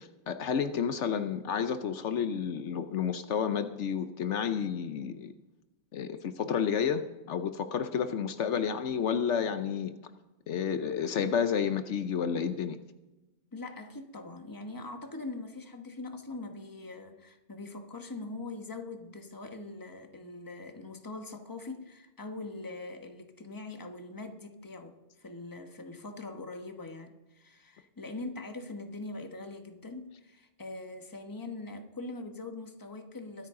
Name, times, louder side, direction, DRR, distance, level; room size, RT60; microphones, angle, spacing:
voice 1, 0.0-5.3 5.9-7.0 7.3-9.9 10.5-12.8, left 7 dB, 70° left, 10 dB, 1.0 m, -30 dB
voice 2, 13.5-33.5, left 2 dB, 15° left, 5 dB, 1.2 m, -42 dB
23.5 x 8.7 x 3.7 m, 1.1 s
omnidirectional pair, 1.3 m